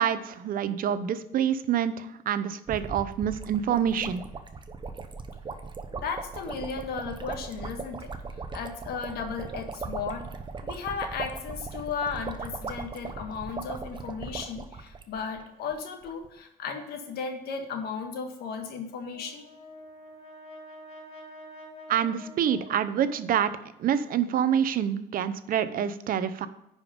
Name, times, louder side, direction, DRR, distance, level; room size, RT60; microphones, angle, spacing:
voice 1, 0.0-4.2 21.9-23.5 23.8-26.5, right 9 dB, 55° right, 13 dB, 0.7 m, -27 dB
sound 1, 2.7-15.4 15.7-15.8 16.0-16.3, right 4 dB, 30° right, 0.9 m, -39 dB
voice 2, 5.9-8.1 8.5-10.3 10.6-19.4, left 5 dB, 70° left, 5 dB, 1.7 m, -35 dB
Brass instrument, 19.1-23.5, equal, 40° left, 2.6 m, -47 dB
10.5 x 5.1 x 5.2 m, 0.85 s
cardioid pair, 110°, 17 cm